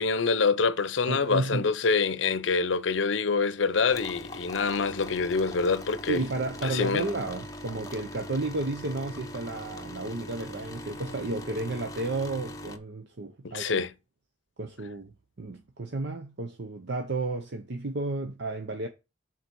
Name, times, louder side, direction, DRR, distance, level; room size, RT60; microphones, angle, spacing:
voice 1, 0.0-6.2 6.6-7.1 13.4-13.9, left 4 dB, 70° left, 0.6 m, -26 dB
voice 2, 1.1-1.7 6.1-13.9 14.6-18.9, right 2 dB, 60° right, 0.8 m, -32 dB
sound 1, 3.9-12.8, left 1 dB, 20° left, 0.9 m, -41 dB
6.9 x 4.2 x 6.1 m
head